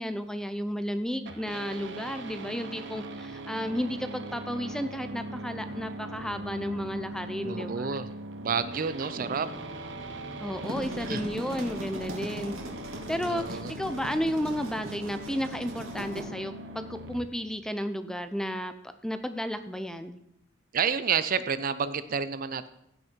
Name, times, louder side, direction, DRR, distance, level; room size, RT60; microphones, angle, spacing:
voice 1, 0.0-8.0 9.2-9.3 10.4-12.5 13.1-18.7 19.0-20.2, equal, 5° left, 10 dB, 0.5 m, -33 dB
sound 1, 1.3-17.3, right 1 dB, 65° right, 0.9 m, -40 dB
sound 2, 3.6-4.2 4.6-5.1 5.6-8.1 8.5-9.0 9.4-11.4, left 1 dB, 80° left, 2.3 m, -51 dB
voice 2, 7.4-8.1 8.4-9.5 11.1-11.2 13.3-13.7 20.7-22.7, right 6 dB, 45° right, 13 dB, 0.5 m, -29 dB
sound 3, 10.4-16.2, equal, 80° right, 2.3 m, -40 dB
16.0 x 6.4 x 4.5 m, 0.79 s
head